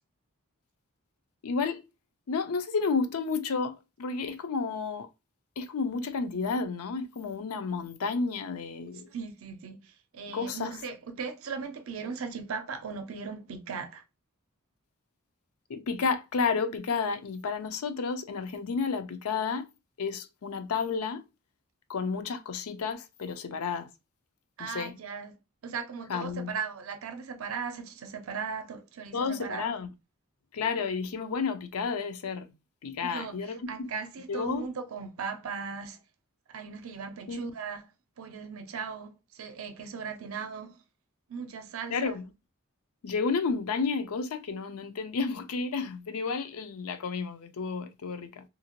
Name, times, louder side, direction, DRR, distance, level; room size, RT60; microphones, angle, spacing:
voice 1, 1.4-1.8 2.3-5.1 5.6-9.1 10.3-10.8 15.7-19.7 20.0-21.2 21.9-23.9 24.6-24.9 26.1-26.5 29.1-29.9 30.5-32.5 32.8-33.9 34.3-34.7 37.3-37.4 41.9-42.3 43.0-48.4, left 5 dB, 90° left, 0.5 m, -31 dB
voice 2, 9.1-14.0 24.6-25.3 25.6-29.7 33.0-33.3 33.7-36.0 36.5-37.8 38.2-40.8 41.3-42.2, right 5 dB, 70° right, 0.5 m, -38 dB
2.8 x 2.5 x 2.9 m
head